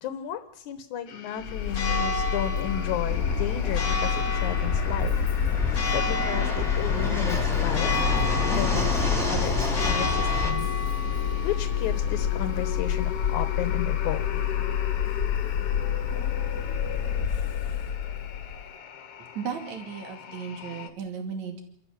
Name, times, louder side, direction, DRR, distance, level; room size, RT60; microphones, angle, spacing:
voice 1, 0.0-5.1 5.5-7.9 8.4-10.7 11.4-14.4, left 10 dB, 75° left, 10 dB, 2.5 m, -33 dB
sound 1, 1.1-20.9, left 8 dB, 55° left, 2.0 m, -41 dB
Church bell, 1.4-18.7, left 7 dB, 40° left, 1.4 m, -27 dB
Fixed-wing aircraft airplane, 3.1-10.5, left 1 dB, ahead, 2.5 m, -30 dB
voice 2, 19.4-21.6, right 6 dB, 65° right, 4 dB, 3.8 m, -35 dB
28.5 x 13.5 x 7.3 m, 0.73 s
omnidirectional pair, 3.5 m